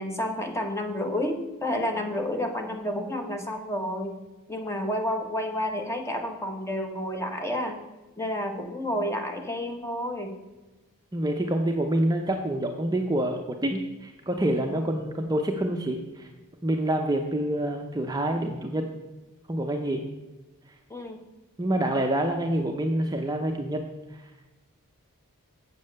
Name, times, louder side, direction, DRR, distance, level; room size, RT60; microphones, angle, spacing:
voice 1, 0.0-4.1 4.5-7.8 8.2-10.4 14.7-14.8 20.9-21.2, left 1 dB, 15° left, 4 dB, 1.1 m, -30 dB
voice 2, 11.1-16.3 16.6-18.8 19.5-20.0 21.6-23.8, right 1 dB, 15° right, 3 dB, 0.6 m, -27 dB
7.6 x 7.4 x 6.4 m, 1.1 s
head